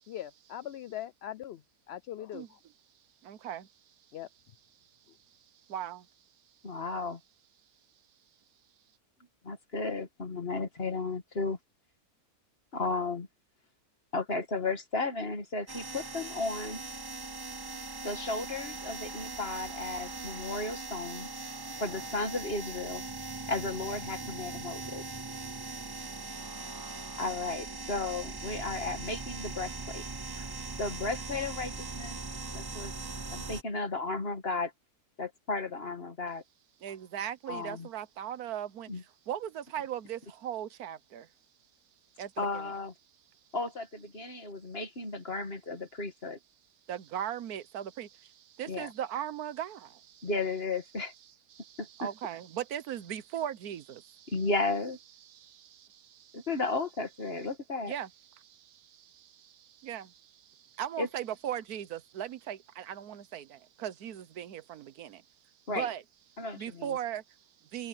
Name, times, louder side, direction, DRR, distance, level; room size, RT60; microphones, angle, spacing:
voice 1, 0.1-1.6 1.9-2.6 4.1-4.3, left 11 dB, 70° left, 0.6 m, -41 dB
voice 2, 3.2-3.7 5.7-6.1 36.8-41.3 42.2-42.7 46.9-50.3 51.5-54.4 55.2-56.5 57.9-65.2 65.7-66.0 66.6-67.9, right 10 dB, 80° right, 1.4 m, -39 dB
voice 3, 6.6-7.2 9.4-11.6 12.7-13.3 14.1-16.8 18.0-21.3 21.8-23.0 23.5-25.0 27.2-30.0 30.4-30.5 30.8-32.2 32.5-32.9 33.3-34.7 35.2-36.4 37.5-37.9 38.9-39.0 42.4-42.9 43.5-46.4 48.7-48.9 50.2-51.1 51.8-52.1 54.3-55.0 56.3-57.9 61.0-61.1 65.7-65.9 66.4-66.9, left 3 dB, 40° left, 2.3 m, -34 dB
sound 1, 15.7-33.6, right 3 dB, 40° right, 0.3 m, -40 dB
omnidirectional pair, 1.6 m